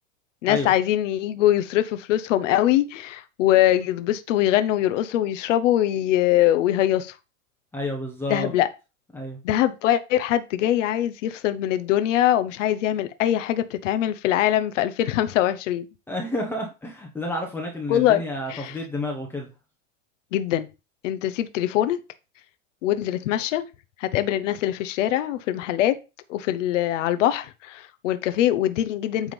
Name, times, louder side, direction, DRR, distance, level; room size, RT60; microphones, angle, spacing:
voice 1, 0.4-7.1 8.3-8.7 9.4-15.9 17.9-18.2 18.5-18.7 20.3-20.7 21.0-22.0 22.8-23.6 24.0-26.0 26.3-29.3, left 12 dB, 65° left, 1.0 m, -22 dB
voice 2, 7.7-8.5 9.1-9.4 16.1-19.5, left 1 dB, 5° left, 1.2 m, -30 dB
9.1 x 3.7 x 5.3 m
supercardioid pair, 145°, 39 cm